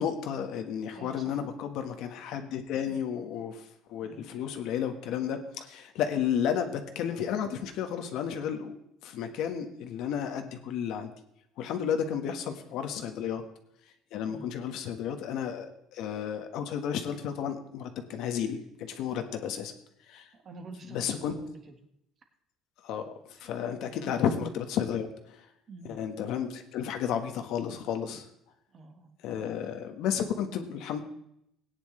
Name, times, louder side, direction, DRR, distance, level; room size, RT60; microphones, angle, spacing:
voice 1, 0.0-3.6 3.9-8.8 9.0-11.1 11.6-13.4 14.1-19.7 20.1-20.3 20.9-21.3 22.8-23.0 23.4-25.4 25.9-28.2 29.2-31.0, left 8 dB, 65° left, 6 dB, 1.4 m, -32 dB
voice 2, 0.9-1.4 2.9-3.0 4.0-4.3 11.9-12.1 12.7-12.8 14.3-14.5 20.3-21.7 23.4-23.5 24.0-24.2 25.7-26.0 28.7-29.1, right 3 dB, 35° right, 5 dB, 1.6 m, -48 dB
18.5 x 9.8 x 3.3 m, 0.75 s
cardioid pair, 160°, 0 cm